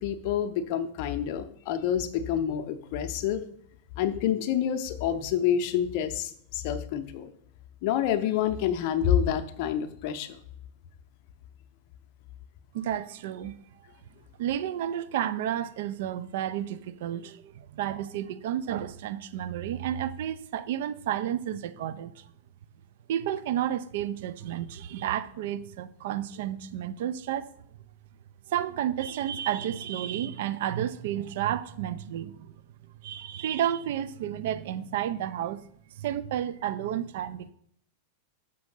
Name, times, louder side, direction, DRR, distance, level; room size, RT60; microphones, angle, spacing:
voice 1, 0.0-3.4 4.0-7.3 7.8-10.4, left 9 dB, 45° left, 0.6 m, -28 dB
voice 2, 12.7-13.6 14.4-22.3 23.1-27.5 28.5-32.5 33.0-35.7 36.0-37.5, right 11 dB, 55° right, 0.4 m, -31 dB
6.7 x 5.1 x 3.9 m
figure-of-eight pair, 90°, 0 cm